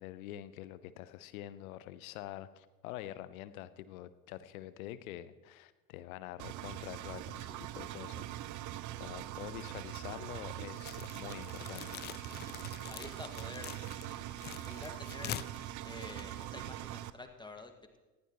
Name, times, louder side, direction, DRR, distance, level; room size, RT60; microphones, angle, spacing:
voice 1, 0.0-8.3 8.6-8.7 9.0-12.0, left 13 dB, 65° left, 15 dB, 0.9 m, -46 dB
Engine, 6.4-17.1, right 13 dB, 40° right, 0.7 m, -43 dB
sound 1, 10.8-16.9, left 13 dB, 25° left, 0.3 m, -46 dB
voice 2, 12.9-13.7 14.6-15.4 15.8-18.0, left 2 dB, 10° left, 5 dB, 1.8 m, -48 dB
19.5 x 15.0 x 3.1 m, 1.2 s
figure-of-eight pair, 60°, 46 cm